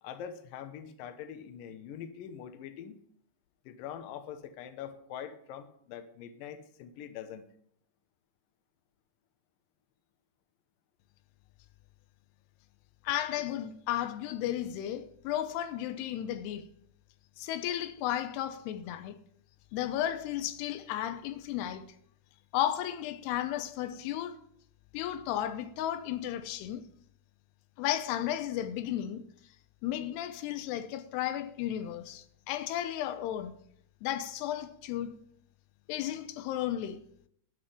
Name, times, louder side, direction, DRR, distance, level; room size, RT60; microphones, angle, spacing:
voice 1, 0.0-3.0 3.7-7.5 22.3-22.4, left 9 dB, 70° left, 2.4 m, -44 dB
voice 2, 13.0-16.7 17.4-19.2 19.7-21.9 22.5-24.4 24.9-26.9 27.8-29.3 29.8-33.6 34.0-35.2 35.9-37.0, left 12 dB, 90° left, 2.9 m, -34 dB
13.0 x 6.0 x 9.4 m
omnidirectional pair, 4.6 m